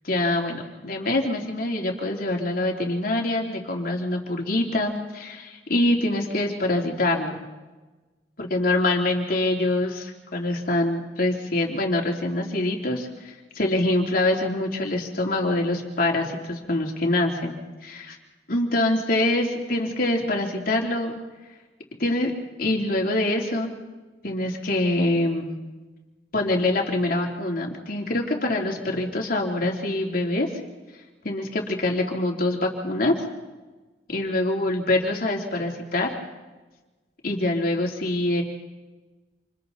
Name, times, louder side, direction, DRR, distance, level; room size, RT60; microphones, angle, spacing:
voice 1, 0.1-7.4 8.4-17.6 17.8-18.2 18.5-21.2 22.0-22.3 22.6-23.7 24.2-25.5 26.3-30.5 31.2-33.2 34.1-36.1 37.2-38.4, left 1 dB, 55° left, 1 dB, 3.2 m, -25 dB
28.5 x 28.0 x 4.1 m, 1.2 s
head